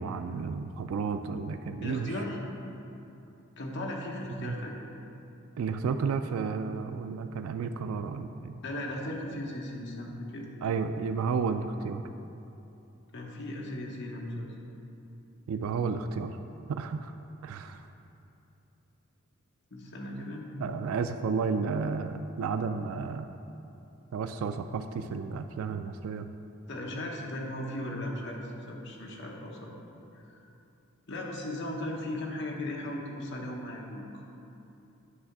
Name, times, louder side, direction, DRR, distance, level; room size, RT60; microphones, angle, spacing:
voice 1, 0.0-2.1 4.4-4.5 5.6-8.6 10.6-12.0 15.5-16.4 16.7-17.1 17.4-17.8 20.6-23.3 24.1-26.3, right 5 dB, 80° right, 9 dB, 0.3 m, -32 dB
voice 2, 1.8-2.4 3.6-4.8 8.6-10.5 13.1-14.5 19.7-20.5 26.7-29.7 31.1-34.0, left 1 dB, 60° left, -1 dB, 1.0 m, -37 dB
9.6 x 3.4 x 6.0 m, 2.9 s
head